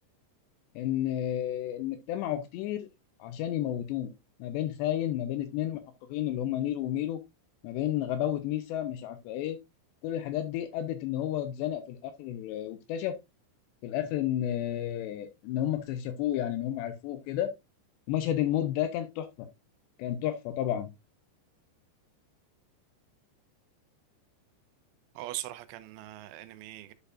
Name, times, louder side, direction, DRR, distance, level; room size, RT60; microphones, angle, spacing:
voice 1, 0.8-2.9 3.2-4.1 4.4-5.8 6.1-7.2 7.6-9.6 10.0-13.1 13.8-17.5 18.1-19.5 20.0-20.9, left 12 dB, 80° left, 2.7 m, -31 dB
voice 2, 25.2-26.9, right 15 dB, 90° right, 3.1 m, -40 dB
11.5 x 4.9 x 2.4 m
omnidirectional pair, 5.4 m